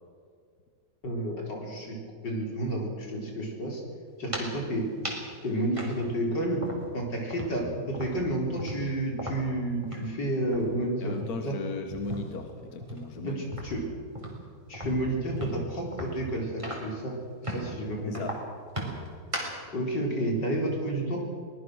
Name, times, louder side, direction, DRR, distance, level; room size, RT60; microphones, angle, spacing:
voice 1, 1.0-2.0 2.2-3.8 4.2-4.9 5.4-6.6 6.9-11.1 11.4-11.6 13.2-13.8 14.7-17.2 17.4-18.1 19.7-21.2, right 1 dB, 80° left, 0 dB, 5.0 m, -30 dB
sound 1, 4.1-4.6 5.0-5.3 5.7-7.0 7.3-10.2 10.4-10.7 11.1-12.4 12.8-17.0 17.4-17.8 18.1-19.6, right 1 dB, 15° right, 4.3 m, -37 dB
voice 2, 11.0-13.5 18.1-18.4, left 3 dB, 60° left, 6 dB, 1.9 m, -37 dB
24.0 x 19.5 x 6.4 m, 2.1 s
omnidirectional pair, 1.9 m